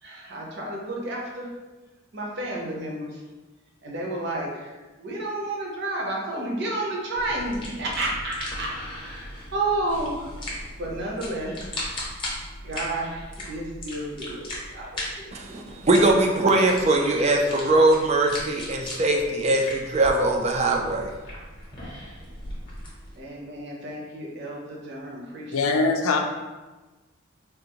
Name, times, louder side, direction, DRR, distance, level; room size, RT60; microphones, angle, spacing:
voice 1, 0.0-1.5 2.1-3.2 3.8-10.3 10.8-11.7 12.6-15.6 23.2-25.6, right 2 dB, 55° right, -3 dB, 0.8 m, -31 dB
sound 1, 7.1-23.2, left 1 dB, 25° left, 0.8 m, -38 dB
voice 2, 15.3-21.1, right 2 dB, 30° right, 2 dB, 0.3 m, -21 dB
voice 3, 25.5-26.2, left 3 dB, 80° left, 3 dB, 0.4 m, -22 dB
3.5 x 2.5 x 2.9 m, 1.2 s
head